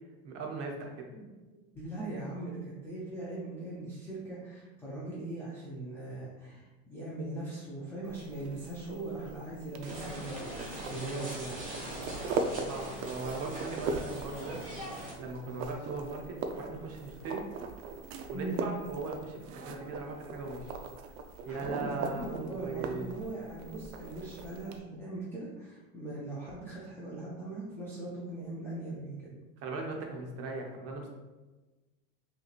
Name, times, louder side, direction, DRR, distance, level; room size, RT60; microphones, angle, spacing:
voice 1, 0.2-1.1 12.7-14.6 15.2-17.4 18.3-20.7 21.5-23.1 29.6-31.1, right 3 dB, 35° right, 1 dB, 0.8 m, -39 dB
voice 2, 1.7-11.6 18.3-18.6 21.5-29.4, right 2 dB, 5° left, -8 dB, 0.3 m, -40 dB
sound 1, 8.0-24.8, right 4 dB, 70° right, 0.6 m, -40 dB
sound 2, 9.8-15.1, right 1 dB, 20° right, 1.4 m, -42 dB
5.5 x 3.0 x 2.4 m, 1.2 s
supercardioid pair, 145°, 42 cm